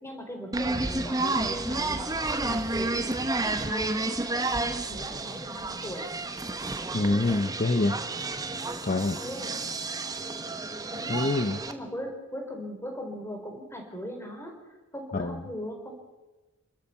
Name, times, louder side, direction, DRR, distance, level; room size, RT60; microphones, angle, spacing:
voice 1, 0.0-3.1 3.4-4.5 4.9-6.1 9.1-9.5 10.9-11.3 11.6-14.5 14.9-15.9, equal, 10° left, 3 dB, 4.0 m, -39 dB
sound 1, 0.5-11.7, right 2 dB, 15° right, 1.0 m, -31 dB
voice 2, 6.9-8.0 8.8-9.2 11.1-11.6 15.1-15.4, left 2 dB, 35° left, 10 dB, 0.7 m, -26 dB
29.0 x 13.0 x 7.0 m, 1.1 s
head